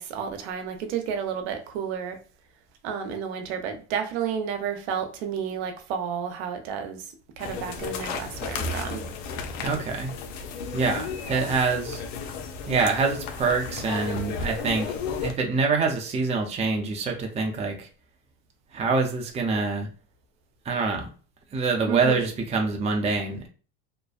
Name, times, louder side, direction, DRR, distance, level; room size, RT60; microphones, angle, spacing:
voice 1, 0.0-2.2 2.8-9.1 11.3-11.6 21.9-22.3, right 7 dB, 70° right, 0.7 m, -31 dB
sound 1, 7.4-15.3, left 5 dB, 60° left, 0.6 m, -33 dB
voice 2, 9.6-10.1 10.7-12.0 12.7-17.9 18.7-19.9 20.7-21.1 21.5-23.5, right 4 dB, 20° right, 0.5 m, -25 dB
2.5 x 2.1 x 2.3 m
hypercardioid pair, 95°, 34 cm